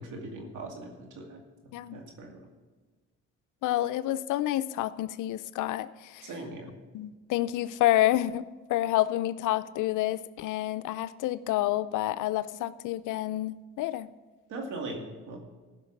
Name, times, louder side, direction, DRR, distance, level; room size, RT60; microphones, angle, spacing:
voice 1, 0.0-1.4 1.9-2.4 6.2-6.7 14.5-15.4, right 2 dB, 85° right, 2 dB, 2.4 m, -39 dB
voice 2, 3.6-6.3 6.9-8.4 8.7-14.1, left 14 dB, 85° left, 15 dB, 0.5 m, -28 dB
15.0 x 5.9 x 6.1 m, 1.3 s
cardioid pair, 90°, 30 cm